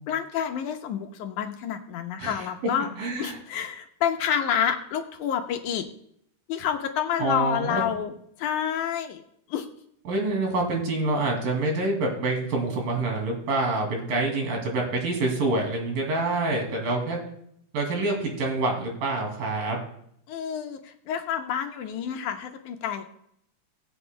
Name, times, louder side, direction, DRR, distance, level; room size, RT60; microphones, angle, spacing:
voice 1, 0.1-2.9 3.2-5.9 6.5-8.1 8.4-9.2 9.5-9.7 20.3-23.0, left 9 dB, 75° left, 5 dB, 2.0 m, -28 dB
voice 2, 3.0-3.4 7.2-7.8 10.1-17.2 17.7-19.8, right 2 dB, 85° right, 1 dB, 4.2 m, -26 dB
21.5 x 7.9 x 2.2 m, 0.71 s
omnidirectional pair, 3.9 m